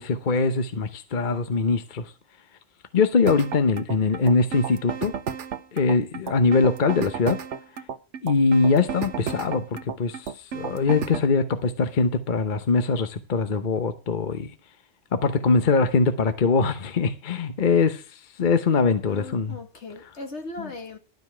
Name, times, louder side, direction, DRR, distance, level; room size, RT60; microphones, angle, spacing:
voice 1, 0.0-2.1 2.9-5.1 5.7-7.4 8.2-9.6 10.0-14.5 15.1-19.6 20.6-20.7, left 4 dB, 45° left, 1.0 m, -22 dB
sound 1, 3.3-11.3, right 8 dB, 85° right, 1.1 m, -33 dB
voice 2, 19.0-21.0, left 2 dB, 75° left, 2.3 m, -38 dB
12.0 x 5.3 x 7.6 m
omnidirectional pair, 1.2 m